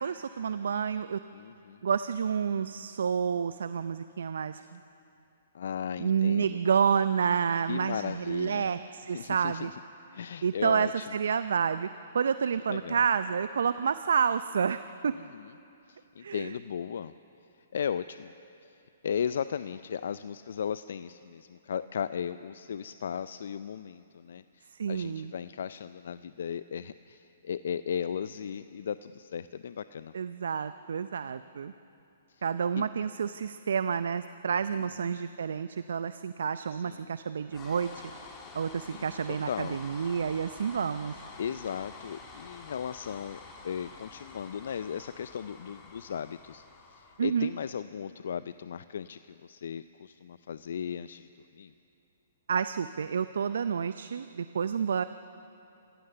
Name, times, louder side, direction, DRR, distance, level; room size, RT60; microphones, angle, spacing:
voice 1, 0.0-1.2 1.8-4.8 6.0-9.7 10.4-11.9 12.1-15.2 16.2-16.5 24.7-25.3 30.1-31.7 32.4-37.9 38.5-41.2 47.2-47.5 52.5-55.0, right 7 dB, 70° right, 12 dB, 0.5 m, -29 dB
voice 2, 1.3-1.8 5.5-6.6 7.7-8.7 9.1-9.8 10.1-11.1 12.7-13.1 15.1-15.5 15.9-17.1 17.7-18.3 18.6-18.7 19.0-30.1 32.3-32.4 32.7-32.9 34.8-35.2 36.7-37.1 38.9-39.8 41.4-46.6 46.9-51.3 51.6-51.7, left 8 dB, 65° left, 14 dB, 0.5 m, -36 dB
sound 1, 37.5-47.8, left 4 dB, 25° left, 2.9 m, -48 dB
27.0 x 16.0 x 6.8 m, 2.8 s
hypercardioid pair, 130°, 0 cm